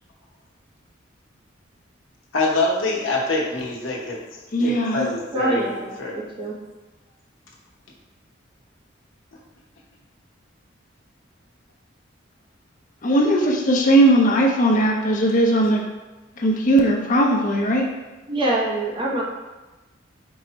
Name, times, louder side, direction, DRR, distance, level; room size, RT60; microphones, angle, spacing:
voice 1, 2.3-4.2 4.6-5.7 6.0-6.2, left 2 dB, 85° left, -3 dB, 0.9 m, -24 dB
voice 2, 4.5-5.1 13.0-15.8 16.4-17.9, right 1 dB, 40° left, 0 dB, 0.5 m, -18 dB
voice 3, 5.3-6.6 18.3-19.2, right 1 dB, 25° right, -2 dB, 0.6 m, -25 dB
4.6 x 2.1 x 3.9 m, 1.1 s
head